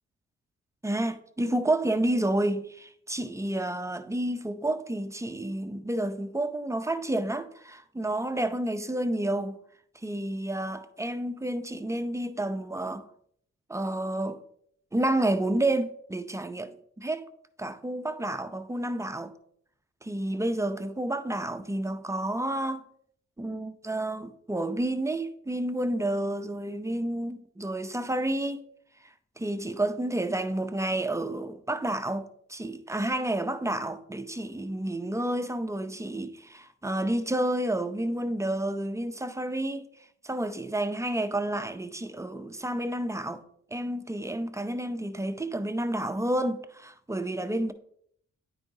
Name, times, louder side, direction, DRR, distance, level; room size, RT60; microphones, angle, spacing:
voice 1, 0.8-9.6 10.0-13.0 13.7-14.4 14.9-17.2 17.6-19.3 20.0-22.8 23.4-28.6 29.4-39.9 40.2-43.4 43.7-47.7, right 1 dB, 10° right, 0.5 m, -30 dB
9.0 x 4.7 x 2.7 m
cardioid pair, 60°, 30 cm